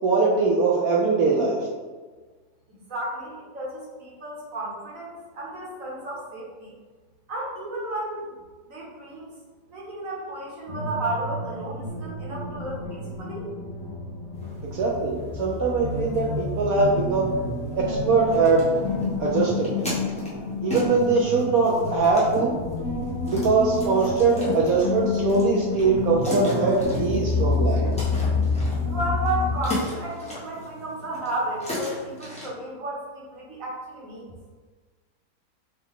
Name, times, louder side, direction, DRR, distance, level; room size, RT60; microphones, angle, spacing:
voice 1, 0.0-1.7 14.6-17.3 17.8-18.7 19.2-19.7 20.6-22.5 23.3-27.9, right 4 dB, 75° right, -3 dB, 0.8 m, -22 dB
voice 2, 2.7-6.7 7.3-8.3 8.7-9.4 9.7-13.5 28.9-34.3, right 1 dB, 50° right, -5 dB, 1.3 m, -33 dB
sound 1, 10.7-29.6, left 3 dB, 60° left, 0.9 m, -29 dB
sound 2, 14.3-32.5, left 1 dB, 5° left, 0.6 m, -37 dB
5.4 x 2.4 x 3.6 m, 1.4 s
omnidirectional pair, 2.1 m